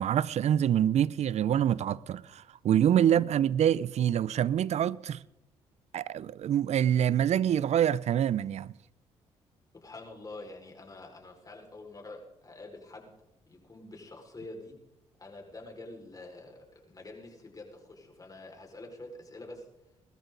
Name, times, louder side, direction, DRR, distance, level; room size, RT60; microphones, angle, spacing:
voice 1, 0.0-5.2 5.9-8.7, right 10 dB, 60° right, 0.6 m, -26 dB
voice 2, 9.7-13.1 13.5-14.7 15.2-19.7, left 2 dB, 30° left, 5.2 m, -46 dB
21.0 x 13.5 x 4.0 m
supercardioid pair, 60°, 13 cm